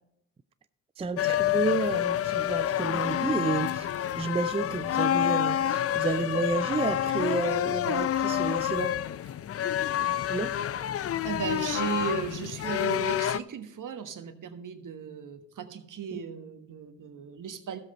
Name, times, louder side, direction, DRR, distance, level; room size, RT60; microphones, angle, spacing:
voice 1, 1.0-9.0 10.3-10.5 16.1-16.2, right 4 dB, 15° right, 0.5 m, -31 dB
sound 1, 1.2-13.4, left 11 dB, 40° left, 0.5 m, -28 dB
voice 2, 11.2-17.8, right 6 dB, 55° right, 1.4 m, -36 dB
13.5 x 7.6 x 4.3 m
hypercardioid pair, 45°, 38 cm